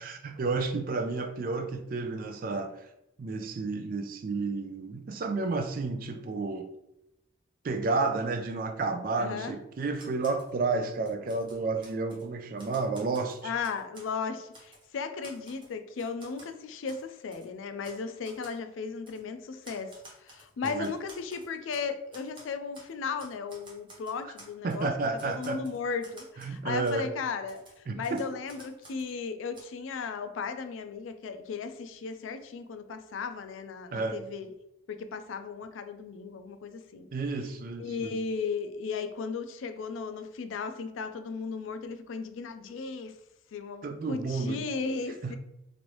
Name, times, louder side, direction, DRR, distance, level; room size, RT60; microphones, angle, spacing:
voice 1, 0.0-2.9 3.2-6.7 7.6-13.5 20.6-20.9 24.6-25.6 26.4-27.1 27.9-28.3 33.9-34.2 37.1-38.1 43.8-44.6 45.2-45.4, right 3 dB, 45° right, 0.3 m, -31 dB
voice 2, 9.1-9.5 13.4-24.9 25.2-34.5 34.9-37.1 37.8-43.1 43.5-45.4, left 5 dB, 90° left, 0.4 m, -36 dB
Typewriter, 9.9-10.5 10.9-12.2 12.6-14.1 14.5-14.9 15.2-16.5 16.9-17.0 17.3-17.5 17.8-18.0 18.2-18.6 19.1-19.2 19.6-21.9 22.1-22.9 23.2-24.8 25.2-26.6 26.8-27.0 27.5-29.1 29.5-29.6, right 1 dB, 25° right, 0.7 m, -52 dB
3.0 x 2.6 x 3.0 m
head